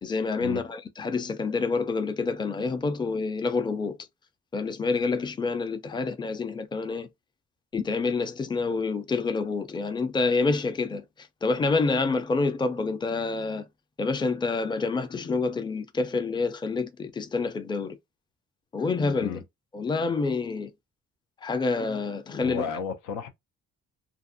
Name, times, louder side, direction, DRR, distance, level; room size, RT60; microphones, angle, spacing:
voice 1, 0.0-4.0 4.5-7.1 7.7-11.0 11.4-13.6 14.0-18.0 18.7-19.4 19.7-20.7 21.4-22.7, left 4 dB, 15° left, 0.4 m, -27 dB
voice 2, 22.4-23.3, left 6 dB, 85° left, 0.6 m, -33 dB
2.5 x 2.5 x 2.6 m
cardioid pair, 90°, 30 cm